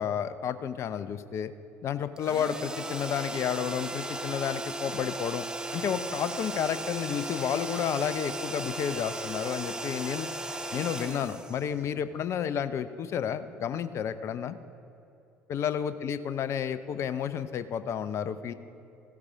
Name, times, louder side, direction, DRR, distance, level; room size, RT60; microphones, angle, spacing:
voice 1, 0.0-1.5 1.8-5.4 5.7-10.3 10.7-14.6 15.5-18.5, left 8 dB, 40° left, 13 dB, 0.5 m, -31 dB
sound 1, 2.2-12.1, right 2 dB, 10° right, 0.7 m, -36 dB
15.5 x 9.6 x 3.6 m, 2.7 s
figure-of-eight pair, 60°, 7 cm